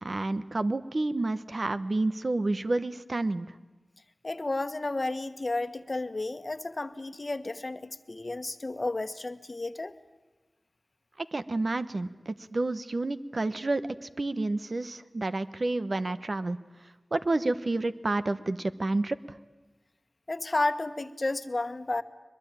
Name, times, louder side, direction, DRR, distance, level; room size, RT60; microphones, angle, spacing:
voice 1, 0.0-3.5 11.3-16.6 17.1-19.2, right 2 dB, 60° right, 12 dB, 1.0 m, -29 dB
voice 2, 4.2-9.9 20.3-22.0, left 2 dB, 50° left, 11 dB, 1.2 m, -32 dB
22.5 x 22.0 x 8.8 m, 1.2 s
wide cardioid pair, 50°, 0 cm